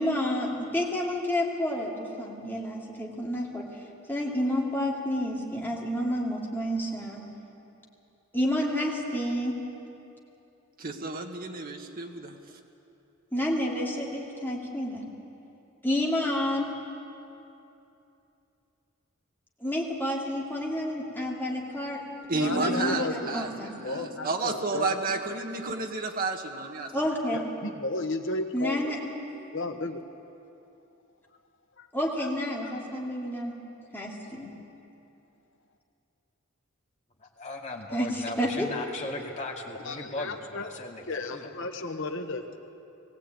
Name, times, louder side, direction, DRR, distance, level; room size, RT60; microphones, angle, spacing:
voice 1, 0.0-3.7 4.1-7.2 8.3-9.6 13.3-15.0 15.8-16.7 19.6-22.0 22.6-23.7 26.9-27.4 28.5-29.0 31.9-33.5 33.9-34.5 37.9-38.7, equal, 10° left, -3 dB, 2.6 m, -29 dB
voice 2, 10.8-12.4 22.3-26.9, right 3 dB, 45° right, 3 dB, 1.5 m, -31 dB
voice 3, 22.4-23.6 23.8-25.0 27.3-28.9 29.5-30.0 31.8-31.9 32.6-32.7 39.8-40.7 41.1-42.4, left 2 dB, 65° left, 6 dB, 1.3 m, -33 dB
voice 4, 37.2-42.0, left 2 dB, 35° left, -1 dB, 2.3 m, -38 dB
20.0 x 16.5 x 9.0 m, 2.8 s
head